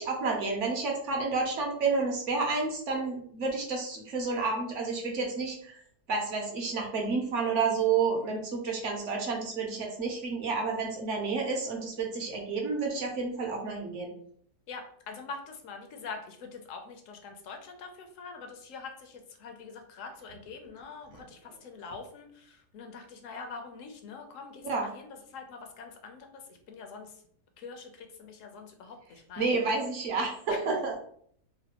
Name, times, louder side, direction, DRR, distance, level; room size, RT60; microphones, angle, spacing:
voice 1, 0.0-5.8 6.1-14.1 21.1-21.2 24.6-24.9 29.4-30.9, right 4 dB, 60° right, 1 dB, 0.8 m, -30 dB
voice 2, 14.7-27.2 27.6-29.5 30.5-30.7, left 4 dB, 70° left, 4 dB, 0.8 m, -44 dB
3.2 x 2.2 x 2.8 m, 0.62 s
omnidirectional pair, 1.7 m